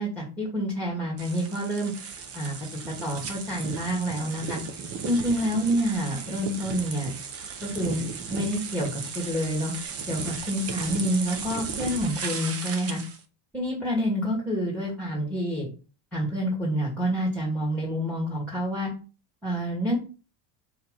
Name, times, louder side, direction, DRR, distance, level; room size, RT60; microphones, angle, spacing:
voice 1, 0.0-1.9 2.3-2.5 3.0-4.6 5.0-7.1 7.6-8.0 8.3-9.7 10.1-13.0 13.5-15.7 16.1-18.9 19.4-20.0, equal, 5° left, -3 dB, 1.7 m, -28 dB
sound 1, 1.2-13.2, right 6 dB, 30° right, 0.8 m, -36 dB
4.8 x 4.4 x 5.1 m, 0.35 s
cardioid pair, 165°, 48 cm